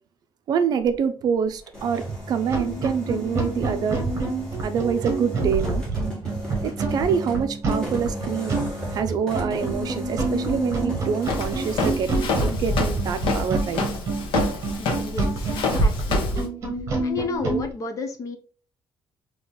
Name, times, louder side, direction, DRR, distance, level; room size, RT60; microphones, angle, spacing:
voice 1, 0.5-4.0 4.6-5.8 6.6-8.6 8.9-13.8, right 7 dB, 50° right, 0.5 m, -26 dB
sound 1, 1.5-12.0 12.3-12.7 13.7-13.9, equal, 10° left, 1.7 m, -36 dB
sound 2, 2.0-2.2 2.5-17.6, right 2 dB, 35° right, 1.3 m, -27 dB
Walk footsteps, 11.2-16.4, left 4 dB, 85° left, 1.0 m, -28 dB
voice 2, 14.8-16.5 17.0-18.4, left 3 dB, 40° left, 0.7 m, -32 dB
3.9 x 2.9 x 3.8 m
cardioid pair, 165°, 8 cm